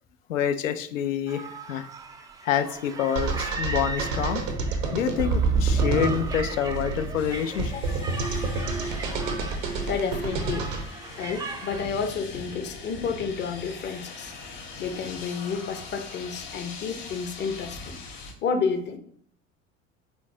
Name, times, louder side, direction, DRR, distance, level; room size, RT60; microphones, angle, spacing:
voice 1, 0.3-1.9 2.4-4.4 4.9-7.8, left 9 dB, 75° left, 11 dB, 0.5 m, -27 dB
sound 1, 1.3-11.9, right 3 dB, 10° right, 0.3 m, -38 dB
sound 2, 3.2-10.8, right 4 dB, 75° right, 0.8 m, -28 dB
sound 3, 7.1-18.3, left 3 dB, 55° left, 1.4 m, -41 dB
voice 2, 7.7-8.0 9.5-10.7 11.2-17.9 18.4-19.0, left 5 dB, 30° left, 7 dB, 0.6 m, -31 dB
4.4 x 3.8 x 2.7 m, 0.63 s
figure-of-eight pair, 60°, 39 cm